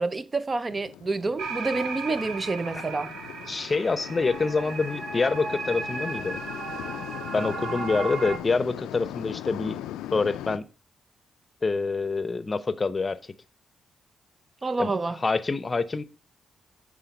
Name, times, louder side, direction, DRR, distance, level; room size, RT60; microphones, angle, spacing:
voice 1, 0.0-3.2 14.6-15.2, right 3 dB, 35° right, 0.5 m, -28 dB
sound 1, 0.7-10.6, left 12 dB, 90° left, 0.3 m, -39 dB
sound 2, 1.4-8.4, right 4 dB, 70° right, 1.2 m, -35 dB
voice 2, 3.5-6.4 7.3-9.8 10.1-10.7 11.6-13.3 14.8-16.0, left 4 dB, 35° left, 0.6 m, -26 dB
9.1 x 3.7 x 5.2 m
supercardioid pair, 60°, 0 cm